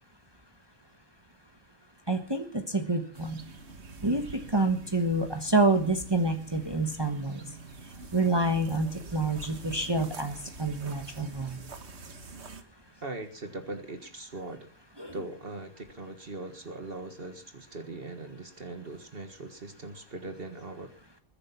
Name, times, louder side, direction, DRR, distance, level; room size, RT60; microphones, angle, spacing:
voice 1, 2.1-3.4 4.0-7.4 8.1-11.6 15.0-15.1, right 2 dB, 25° right, 6 dB, 1.4 m, -28 dB
sound 1, 3.1-12.6, right 3 dB, 80° right, 1.8 m, -46 dB
voice 2, 13.0-14.7 15.1-20.9, right 2 dB, 60° right, 7 dB, 1.9 m, -40 dB
21.5 x 10.5 x 5.9 m, 0.42 s
omnidirectional pair, 1.1 m